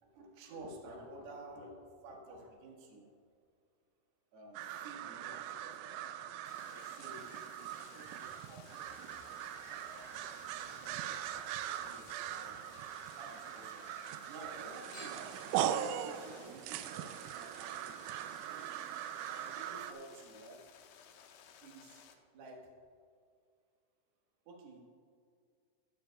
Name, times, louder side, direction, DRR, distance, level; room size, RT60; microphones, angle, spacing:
voice 1, 0.0-3.1 4.3-6.2 6.6-7.3 7.5-8.2 8.5-9.2 9.7-12.6 13.1-13.9 14.3-18.0 19.3-20.6 21.6-22.0 22.3-22.7 24.5-24.9, right 2 dB, 60° right, -1 dB, 3.1 m, -52 dB
sound 1, 4.5-19.9, right 10 dB, 85° right, 2.9 m, -41 dB
sound 2, 6.4-22.1, left 8 dB, 80° left, 2.9 m, -58 dB
Chink clink / Liquid, 8.0-13.6 13.9-14.6 14.9-15.5 16.2-16.3, left 2 dB, 50° left, 4.5 m, -60 dB
15.5 x 12.0 x 2.3 m, 2.2 s
omnidirectional pair, 5.7 m